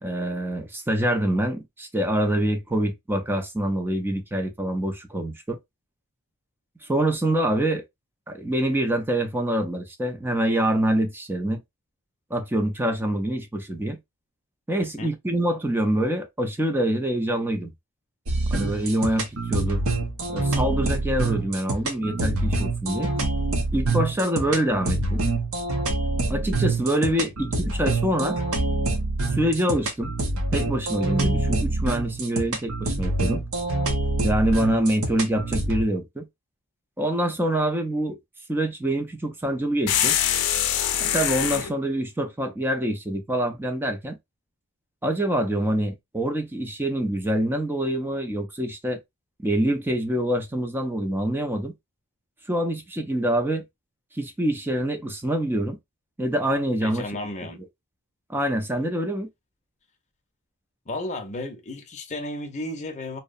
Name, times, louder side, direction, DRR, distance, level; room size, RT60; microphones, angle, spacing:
voice 1, 0.0-5.6 6.9-7.8 8.3-11.6 12.3-14.0 14.7-17.7 18.5-19.8 20.3-23.1 23.7-25.2 26.3-28.4 29.4-30.1 30.5-33.4 34.2-36.3 37.0-38.2 38.5-40.2 41.0-44.2 45.0-49.0 49.4-51.7 52.5-53.6 54.1-55.8 56.2-57.1 58.3-59.3, right 1 dB, 10° right, 0.5 m, -25 dB
sound 1, 18.3-35.8, right 2 dB, 65° right, 0.7 m, -26 dB
sound 2, 39.9-41.7, left 10 dB, 90° left, 0.5 m, -23 dB
voice 2, 56.8-57.6 60.9-63.2, left 1 dB, 30° left, 0.6 m, -33 dB
2.7 x 2.1 x 2.4 m
head